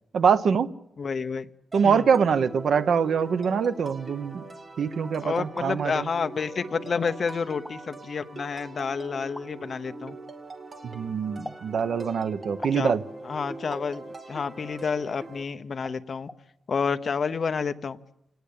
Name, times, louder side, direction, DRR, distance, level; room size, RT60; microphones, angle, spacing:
voice 1, 0.1-0.7 1.7-4.4 4.8-6.1 10.8-13.0, right 6 dB, 70° right, 12 dB, 1.0 m, -24 dB
voice 2, 1.0-1.5 1.8-2.1 5.2-10.2 12.7-12.9 13.2-14.0 14.3-16.3 16.7-18.0, left 5 dB, 45° left, 9 dB, 0.9 m, -29 dB
sound 1, 1.7-15.4, right 2 dB, 30° right, 2.5 m, -42 dB
sound 2, 5.6-5.7 6.6-6.7 7.5-7.8 9.4-9.5 11.5-11.7 12.6-12.9 13.7-13.9 15.2-15.3 15.9-16.0 16.3-16.4, left 1 dB, 5° left, 0.8 m, -40 dB
28.5 x 18.5 x 8.6 m, 0.88 s
wide cardioid pair, 155°, 0 cm